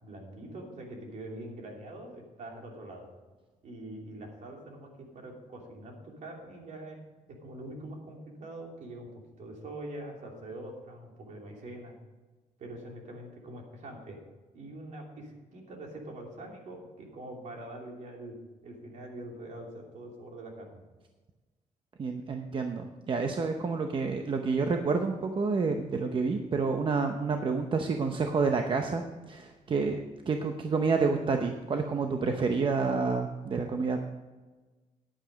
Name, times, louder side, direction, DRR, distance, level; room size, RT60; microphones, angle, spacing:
voice 1, 0.0-3.1 3.6-7.0 7.4-12.0 12.6-14.2 14.5-18.4 18.6-20.8, right 1 dB, 60° right, 1 dB, 2.8 m, -44 dB
voice 2, 22.0-30.0 30.3-34.0, right 4 dB, 40° right, 5 dB, 0.8 m, -29 dB
10.0 x 8.8 x 5.1 m, 1.2 s
cardioid pair, 120°, 14 cm